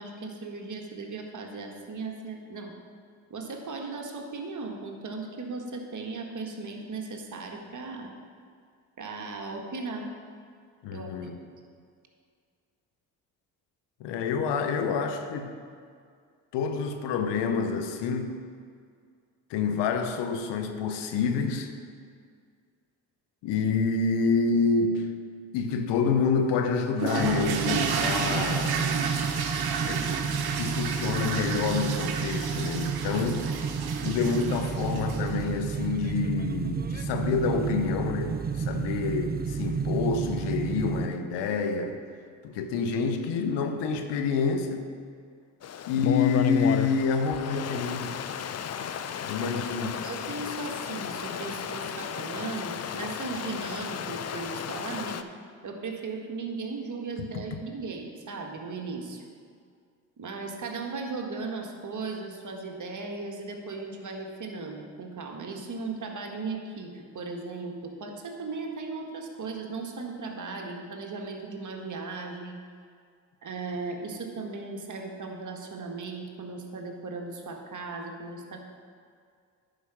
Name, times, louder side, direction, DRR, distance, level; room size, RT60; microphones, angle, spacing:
voice 1, 0.0-2.7 3.3-8.1 9.0-10.1 10.9-11.3 49.4-49.5 49.8-55.2 55.6-59.2 60.2-72.6 73.4-78.7, right 3 dB, 45° right, 2 dB, 1.6 m, -37 dB
voice 2, 10.8-11.4 14.0-15.6 16.5-18.3 19.5-21.7 23.4-25.1 25.5-29.0 29.8-30.1 30.3-33.5 34.0-42.0 42.4-44.8 45.9-48.2 49.2-50.0, left 5 dB, 75° left, 6 dB, 0.9 m, -28 dB
sound 1, 27.0-35.5, right 6 dB, 60° right, 1.0 m, -32 dB
sound 2, 27.2-41.1, right 6 dB, 25° right, 0.5 m, -31 dB
Stream, 45.6-55.2, left 8 dB, 40° left, 0.6 m, -33 dB
10.0 x 5.0 x 5.9 m, 2.1 s
hypercardioid pair, 50°, 42 cm